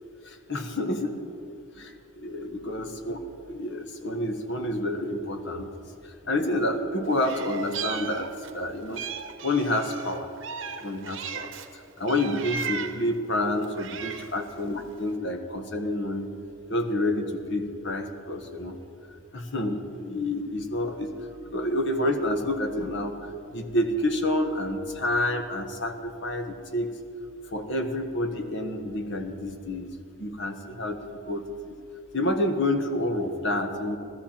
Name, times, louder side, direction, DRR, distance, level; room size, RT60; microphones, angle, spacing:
voice 1, 0.2-1.2 1.8-3.2 3.5-5.7 6.0-8.3 8.5-9.0 9.4-10.3 10.8-16.3 16.7-18.8 19.3-21.1 21.4-27.0 27.5-29.9 30.2-31.0 31.3-31.8 32.1-34.0, left 1 dB, 55° left, 5 dB, 1.2 m, -29 dB
Meow, 7.2-8.6 8.9-11.7 12.1-13.1 13.6-14.4, right 7 dB, 60° right, 0.9 m, -36 dB
17.5 x 13.5 x 4.4 m, 2.5 s
head